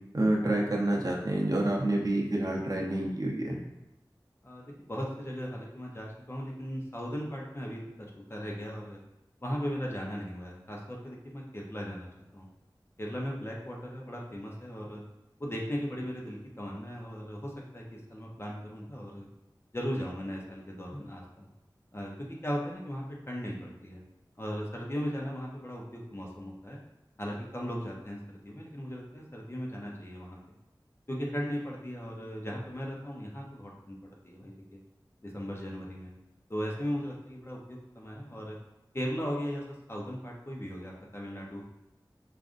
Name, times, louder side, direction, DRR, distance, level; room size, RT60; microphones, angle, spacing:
voice 1, 0.1-3.6, right 1 dB, 50° right, -2 dB, 0.7 m, -28 dB
voice 2, 4.4-9.0 9.4-12.1 12.3-12.5 13.0-15.0 15.4-19.3 19.7-21.5 21.9-24.0 24.4-26.8 27.2-30.4 31.1-34.0 34.2-34.8 35.2-36.1 36.5-38.6 38.9-41.6, equal, 30° left, -2 dB, 0.7 m, -37 dB
4.9 x 2.5 x 2.5 m, 0.94 s
wide cardioid pair, 55°, 8 cm